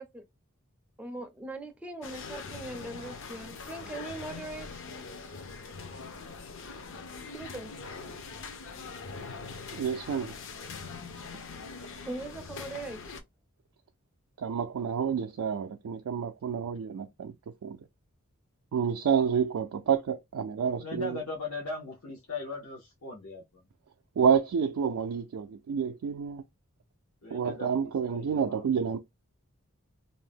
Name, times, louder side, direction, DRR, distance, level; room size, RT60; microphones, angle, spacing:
voice 1, 1.0-4.8 7.3-7.7 12.0-13.1, right 2 dB, 5° right, 0.4 m, -40 dB
sound 1, 2.0-13.2, left 4 dB, 60° left, 0.5 m, -42 dB
voice 2, 9.7-10.3 14.4-17.3 17.6-17.8 18.7-21.2 24.2-26.4 27.3-29.0, right 7 dB, 85° right, 0.4 m, -29 dB
voice 3, 20.8-23.6 27.2-29.0, left 3 dB, 85° left, 0.8 m, -39 dB
2.6 x 2.1 x 3.3 m
head